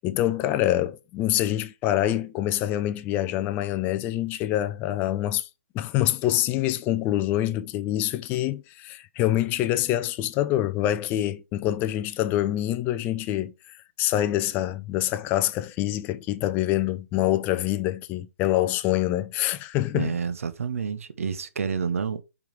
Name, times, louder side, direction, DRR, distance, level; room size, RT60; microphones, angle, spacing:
voice 1, 0.0-5.5 5.7-20.1, left 13 dB, 25° left, 0.5 m, -26 dB
voice 2, 19.9-22.2, right 6 dB, 70° right, 1.0 m, -29 dB
5.4 x 4.8 x 4.6 m
hypercardioid pair, 135°, 8 cm